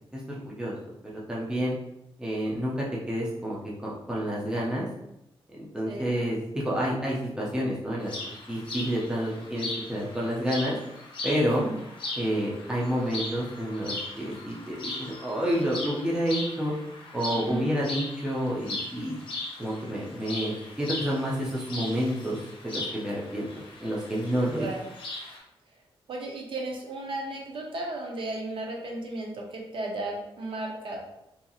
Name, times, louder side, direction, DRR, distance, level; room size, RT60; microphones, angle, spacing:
voice 1, 0.1-0.8 1.3-1.8 2.2-4.9 5.6-8.1 8.5-10.8 11.2-11.6 12.2-16.7 17.1-19.2 19.6-22.4 22.6-23.5 23.8-24.7, equal, 5° right, -4 dB, 0.5 m, -29 dB
sound 1, 8.0-25.4, left 2 dB, 55° left, 0.7 m, -39 dB
voice 2, 17.3-17.7 24.6-24.9 26.1-31.0, right 2 dB, 55° right, 0 dB, 0.5 m, -34 dB
2.7 x 2.6 x 2.3 m, 0.83 s
wide cardioid pair, 175°, 10 cm